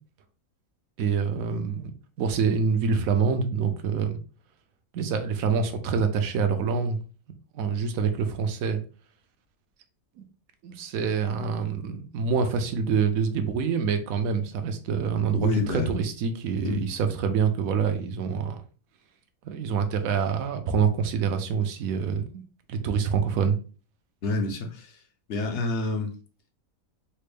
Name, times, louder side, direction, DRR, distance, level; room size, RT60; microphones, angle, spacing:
voice 1, 1.0-1.9 2.2-4.2 4.9-7.0 7.5-8.8 10.2-10.3 10.6-18.6 19.4-22.4 22.7-23.6, right 6 dB, 75° right, 1.0 m, -26 dB
voice 2, 15.3-15.9 16.6-16.8 24.2-25.0 25.3-26.2, left 2 dB, 60° left, 0.8 m, -28 dB
4.2 x 2.1 x 3.3 m
omnidirectional pair, 1.5 m